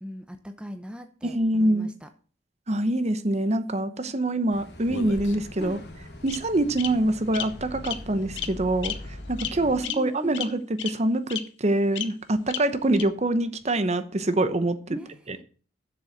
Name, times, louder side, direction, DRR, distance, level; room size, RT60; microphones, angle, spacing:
voice 1, 0.0-2.1 3.8-4.0 5.6-5.8 9.6-10.4 14.9-15.1, equal, 5° right, 0.7 m, -39 dB
voice 2, 1.2-1.9 2.7-5.8 6.2-15.0 15.3-15.4, right 1 dB, 35° right, 0.9 m, -25 dB
sound 1, 4.5-9.8, left 1 dB, 60° left, 3.0 m, -41 dB
Bird vocalization bird call bird song, 4.9-5.6 6.3-6.4 6.8-6.9 7.3-7.4 7.8-8.0 8.4-8.5 8.8-8.9 9.4-9.5 9.8-9.9 10.3-10.4 10.8-10.9 11.3-11.4 12.0-12.1 12.5-12.6 12.9-13.0, left 10 dB, 75° left, 1.0 m, -31 dB
7.6 x 6.8 x 7.8 m
head